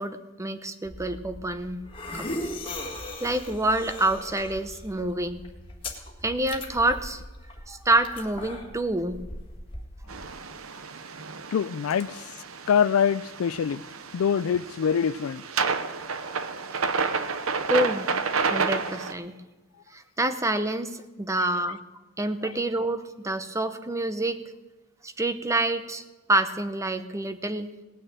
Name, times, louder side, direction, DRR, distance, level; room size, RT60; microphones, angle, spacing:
voice 1, 0.0-1.8 2.1-2.3 3.2-5.4 6.2-7.2 7.7-9.2 17.3-18.1 18.4-19.4 19.9-21.8 22.2-24.4 25.0-26.0 26.3-27.7, right 1 dB, 15° right, 0.8 m, -27 dB
sound 1, 0.8-10.3, left 1 dB, 25° left, 1.8 m, -39 dB
sound 2, 10.1-19.1, right 5 dB, 75° right, 0.9 m, -30 dB
voice 2, 11.5-12.2 12.7-13.8 14.1-15.4, left 7 dB, 75° left, 0.4 m, -24 dB
18.0 x 6.6 x 9.0 m
head